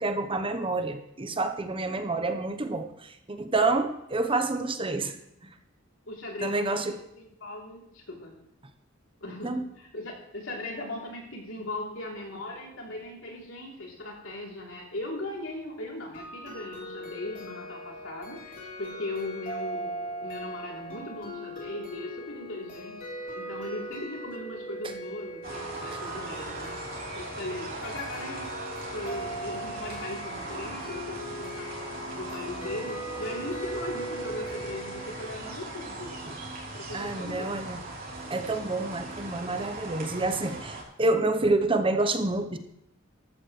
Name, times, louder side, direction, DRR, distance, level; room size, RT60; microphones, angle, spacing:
voice 1, 0.0-5.1 6.4-6.9 9.4-9.6 25.9-26.0 36.9-37.8 38.3-42.6, right 2 dB, 25° right, 8 dB, 0.9 m, -28 dB
voice 2, 6.1-8.3 9.2-23.0 23.3-26.8 27.1-28.5 28.9-31.7 32.1-36.2 36.7-37.5, left 1 dB, 85° left, -2 dB, 3.3 m, -38 dB
sound 1, 16.1-35.3, equal, 45° left, 3.5 m, -39 dB
sound 2, 25.4-40.8, right 2 dB, 50° right, 3.5 m, -39 dB
14.5 x 12.0 x 3.2 m, 0.79 s
head